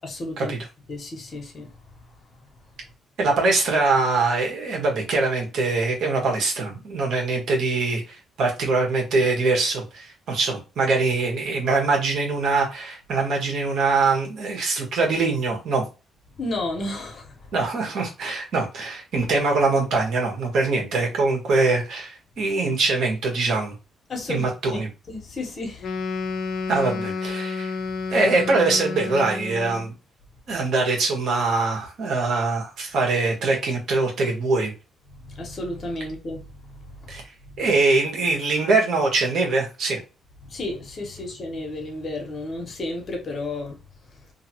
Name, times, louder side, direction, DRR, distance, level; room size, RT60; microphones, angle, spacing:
voice 1, 0.0-0.5 0.9-1.7 16.4-17.4 24.1-24.8 25.1-25.9 35.3-36.5 40.4-43.8, left 2 dB, 45° left, 1.1 m, -32 dB
voice 2, 3.2-15.8 17.5-23.7 24.3-24.9 26.7-27.8 28.1-29.9 30.5-34.7 37.1-37.2 37.6-40.0, right 3 dB, 70° right, 1.3 m, -23 dB
Wind instrument woodwind instrument, 25.8-29.9, left 4 dB, 70° left, 0.5 m, -30 dB
2.8 x 2.6 x 2.8 m
cardioid pair, 90°, 0 cm